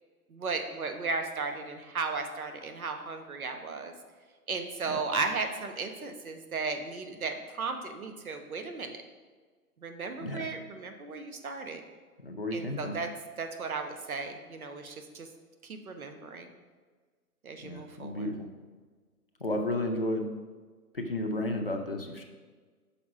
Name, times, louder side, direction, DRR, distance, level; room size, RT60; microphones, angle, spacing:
voice 1, 0.3-3.9 4.5-9.0 9.8-11.8 12.5-13.1 13.4-15.3 15.6-16.5 17.4-18.3, right 4 dB, 65° right, 5 dB, 1.0 m, -35 dB
voice 2, 12.2-13.0 17.6-18.5 19.4-20.3 20.9-22.2, left 1 dB, 40° left, 2 dB, 0.6 m, -32 dB
6.0 x 5.0 x 4.9 m, 1.5 s
hypercardioid pair, 170°, 47 cm